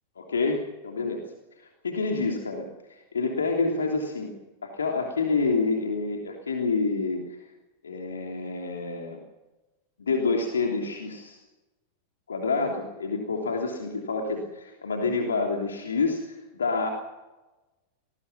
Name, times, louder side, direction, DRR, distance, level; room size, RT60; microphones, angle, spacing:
voice 1, 0.2-1.2 1.8-4.3 4.6-7.2 7.8-9.2 10.0-11.4 12.3-16.9, left 4 dB, 70° left, 2 dB, 3.2 m, -28 dB
27.5 x 19.5 x 5.9 m, 1.1 s
figure-of-eight pair, 90°, 0 cm